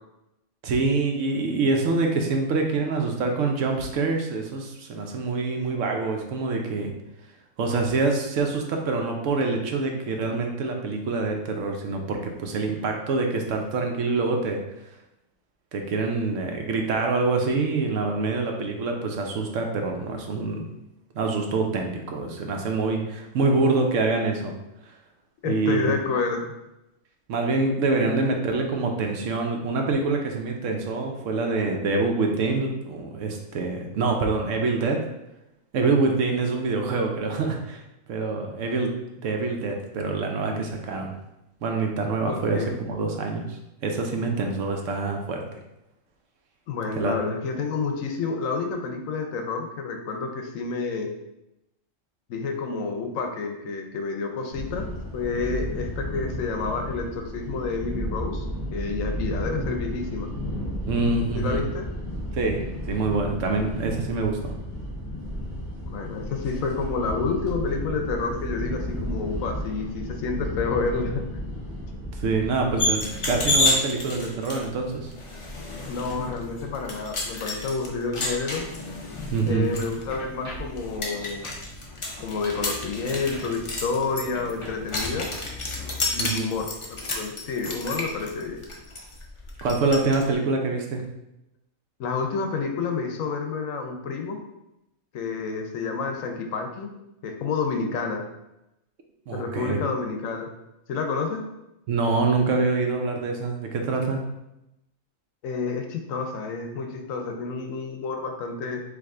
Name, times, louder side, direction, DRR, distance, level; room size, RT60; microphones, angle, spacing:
voice 1, 0.6-6.9 7.6-14.6 15.7-20.7 21.1-24.5 25.4-25.9 27.3-35.0 35.7-37.8 38.1-38.9 39.2-41.1 41.6-43.5 43.8-45.6 47.0-47.1 60.9-61.6 62.3-64.5 72.2-75.1 79.3-79.7 86.2-86.5 89.6-91.0 99.3-99.8 101.9-104.2, right 3 dB, 75° right, 2 dB, 1.0 m, -25 dB
voice 2, 25.4-26.5 28.1-28.2 42.3-42.8 46.7-51.1 52.3-58.5 58.7-60.3 61.3-61.9 65.9-71.2 75.9-78.7 79.4-81.5 82.2-85.3 86.1-88.6 92.0-94.4 95.1-96.9 97.2-98.2 99.3-100.5 100.9-101.5 105.4-108.8, left 4 dB, 85° left, 4 dB, 1.1 m, -29 dB
sound 1, 54.5-73.7, equal, 10° right, 1.4 m, -33 dB
sound 2, 72.8-90.2, left 2 dB, 40° left, 0.5 m, -31 dB
sound 3, 79.7-85.9, equal, 60° left, 2.0 m, -43 dB
4.8 x 2.6 x 3.6 m, 0.90 s
omnidirectional pair, 1.4 m